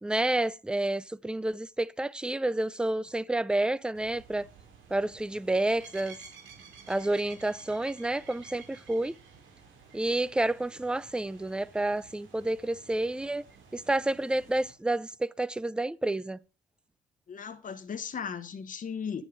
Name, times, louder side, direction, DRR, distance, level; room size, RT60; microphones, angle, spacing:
voice 1, 0.0-4.5 4.9-6.2 6.9-9.2 9.9-13.4 13.7-16.4, right 2 dB, 5° right, 0.4 m, -29 dB
sound 1, 3.9-14.7, right 5 dB, 80° right, 2.5 m, -53 dB
voice 2, 17.3-19.2, left 7 dB, 40° left, 1.1 m, -36 dB
8.9 x 7.0 x 4.7 m
cardioid pair, 90°, 20 cm